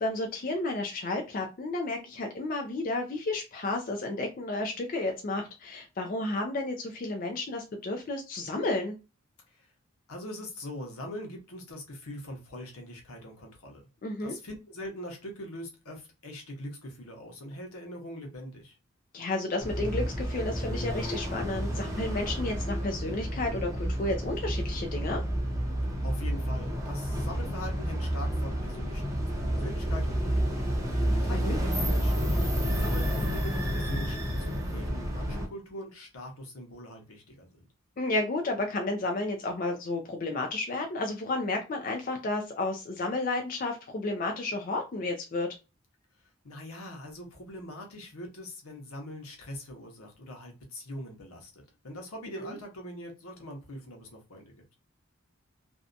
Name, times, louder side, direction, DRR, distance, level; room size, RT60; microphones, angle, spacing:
voice 1, 0.0-8.9 14.0-14.3 19.1-25.2 31.3-31.6 38.0-45.5 52.4-52.5, left 2 dB, 40° left, 0.3 m, -32 dB
voice 2, 10.1-13.8 14.2-18.8 26.0-32.4 32.7-37.6 46.4-54.5, left 1 dB, 90° left, 0.8 m, -42 dB
sound 1, 19.6-35.5, equal, 15° right, 0.6 m, -30 dB
2.6 x 2.2 x 2.4 m
head